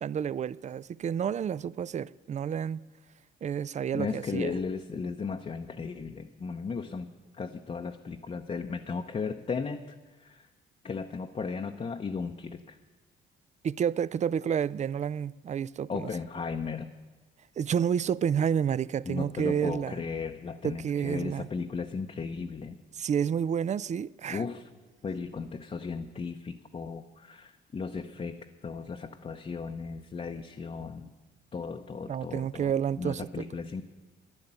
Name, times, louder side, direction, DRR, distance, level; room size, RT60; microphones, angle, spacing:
voice 1, 0.0-2.8 3.4-4.5 13.6-16.1 17.6-20.0 20.6-21.5 23.0-24.4 32.1-33.5, right 8 dB, 35° right, 0.4 m, -30 dB
voice 2, 3.9-7.1 7.4-9.9 10.2-10.5 10.8-12.8 15.9-16.9 19.0-22.8 24.3-24.7 25.0-31.1 31.5-32.7 33.0-33.8, left 5 dB, 30° left, 0.7 m, -36 dB
11.0 x 11.0 x 8.9 m
cardioid pair, 90°, 20 cm